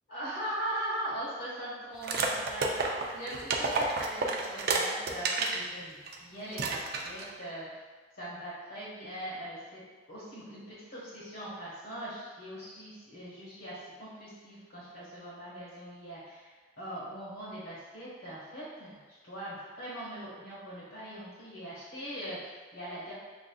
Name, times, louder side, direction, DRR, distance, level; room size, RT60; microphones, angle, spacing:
voice 1, 0.1-7.7 8.2-9.8 10.1-23.1, right 1 dB, 65° left, -9 dB, 1.2 m, -40 dB
sound 1, 2.0-5.6 6.1-6.2 6.5-7.3, right 3 dB, 55° right, 0.4 m, -30 dB
6.4 x 2.5 x 2.3 m, 1.3 s
head